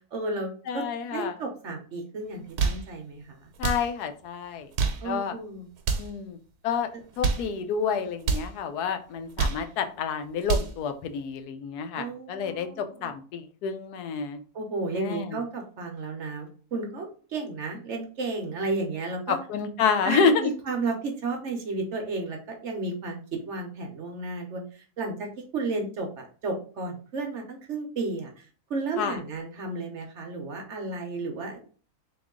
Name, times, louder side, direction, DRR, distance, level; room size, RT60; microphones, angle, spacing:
voice 1, 0.1-0.8 1.1-3.5 5.0-5.7 12.0-13.1 14.5-19.4 20.0-23.2 23.4-24.6 25.0-31.6, right 3 dB, 55° right, 3 dB, 0.9 m, -33 dB
voice 2, 0.7-1.4 3.6-4.7 5.0-5.4 6.0-6.4 6.6-6.9 7.2-14.4 15.0-15.4 19.3-20.5 29.0-29.2, left 6 dB, 90° left, 8 dB, 1.2 m, -28 dB
sound 1, 2.4-2.9 3.5-3.9 4.6-5.1 5.8-6.2 7.0-7.5 8.2-8.5 9.2-9.7 10.2-10.8, right 5 dB, 80° right, 1.2 m, -27 dB
3.8 x 2.9 x 3.6 m, 0.40 s
omnidirectional pair, 1.6 m